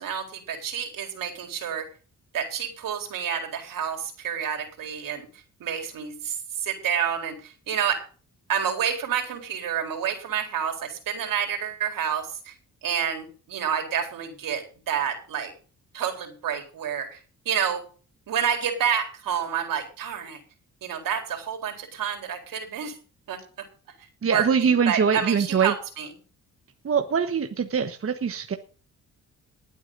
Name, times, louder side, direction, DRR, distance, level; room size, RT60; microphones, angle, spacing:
voice 1, 0.0-1.9 2.3-5.3 5.6-6.4 6.6-8.0 8.5-12.5 12.8-15.5 15.9-17.2 17.5-17.8 18.3-20.4 20.8-22.9 23.3-23.4 24.3-26.1, right 8 dB, 75° right, 4 dB, 4.1 m, -29 dB
voice 2, 24.2-25.7 26.8-28.6, right 6 dB, 40° right, 6 dB, 1.3 m, -23 dB
19.5 x 8.9 x 4.0 m, 0.38 s
cardioid pair, 90°, 33 cm